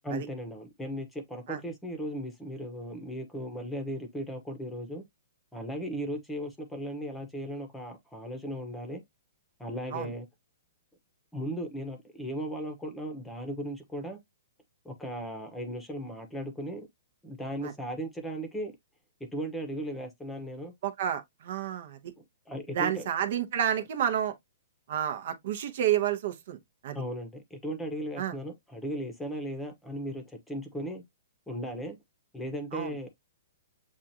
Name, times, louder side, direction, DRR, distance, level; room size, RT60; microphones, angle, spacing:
voice 1, 0.0-5.0 5.5-9.0 9.6-10.3 11.3-14.2 14.8-16.9 17.2-18.7 19.3-20.7 22.2-23.1 26.9-31.0 31.5-32.0 32.3-33.1, equal, 5° left, 0.9 m, -37 dB
voice 2, 20.8-22.1 22.7-24.3 24.9-26.6 26.8-27.0 28.2-28.3 32.7-32.9, right 10 dB, 55° right, 0.8 m, -30 dB
7.3 x 2.5 x 2.7 m
hypercardioid pair, 155°, 0 cm